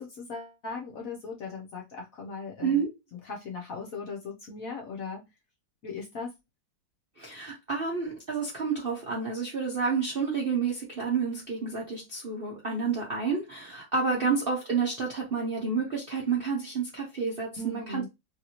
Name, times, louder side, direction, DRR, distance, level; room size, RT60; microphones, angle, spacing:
voice 1, 0.0-2.8 3.3-5.2 5.8-6.3 14.1-14.3 17.6-18.1, left 4 dB, 65° left, 0.9 m, -38 dB
voice 2, 7.2-18.1, right 5 dB, 55° right, 0.6 m, -29 dB
3.1 x 2.6 x 2.8 m
omnidirectional pair, 2.0 m